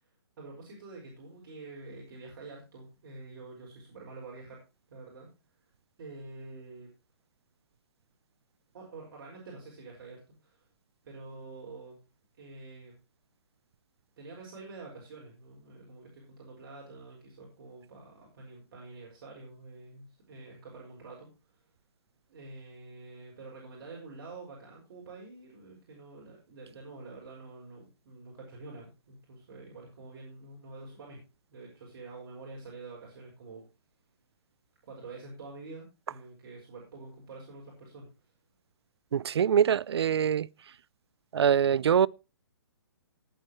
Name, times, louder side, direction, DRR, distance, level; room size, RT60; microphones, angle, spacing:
voice 1, 0.0-4.6 4.9-5.3 5.6-5.7 6.0-6.9 8.7-10.6 11.0-12.0 12.4-12.9 14.2-21.6 22.3-31.2 31.5-33.6 34.8-38.3, right 3 dB, 50° right, 6.1 m, -47 dB
voice 2, 39.1-40.5 41.3-42.1, right 8 dB, 75° right, 0.5 m, -24 dB
19.0 x 9.1 x 3.1 m
hypercardioid pair, 155°, 14 cm